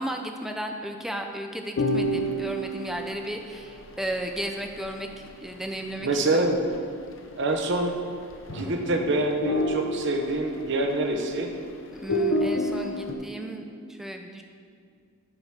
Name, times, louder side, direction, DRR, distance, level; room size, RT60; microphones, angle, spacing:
voice 1, 0.0-6.6 11.9-14.4, right 1 dB, ahead, 3 dB, 0.4 m, -34 dB
sound 1, 1.8-6.8 7.1-7.2 7.5-7.9 8.2-8.9 9.2-11.6 12.0-13.1, equal, 60° left, 0.6 m, -30 dB
voice 2, 6.0-6.8 7.4-8.0 8.5-11.5, right 2 dB, 55° right, 4 dB, 0.8 m, -26 dB
sound 2, 8.5-10.4, left 1 dB, 75° left, 1.2 m, -45 dB
7.8 x 4.8 x 5.7 m, 2.2 s
head